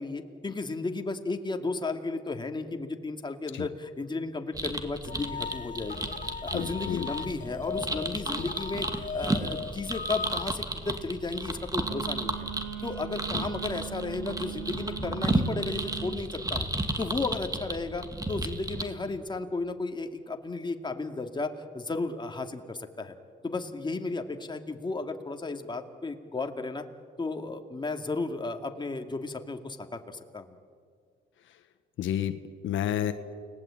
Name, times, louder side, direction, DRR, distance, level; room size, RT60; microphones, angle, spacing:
voice 1, 0.0-6.1 6.4-12.5 12.8-16.7 17.0-23.1 23.4-26.8 27.2-30.0 30.3-30.5, left 3 dB, 20° left, 5 dB, 2.4 m, -34 dB
sound 1, 4.5-18.8, right 2 dB, 20° right, 2.4 m, -33 dB
sound 2, 5.1-10.5, left 6 dB, 40° left, 0.7 m, -39 dB
voice 2, 6.5-7.1 8.4-8.5 13.3-13.5 32.0-33.1, left 10 dB, 75° left, 10 dB, 1.2 m, -30 dB
Wind instrument woodwind instrument, 11.8-16.2, right 11 dB, 75° right, 2.6 m, -40 dB
29.5 x 19.5 x 9.0 m, 2.1 s
cardioid pair, 90°, 20 cm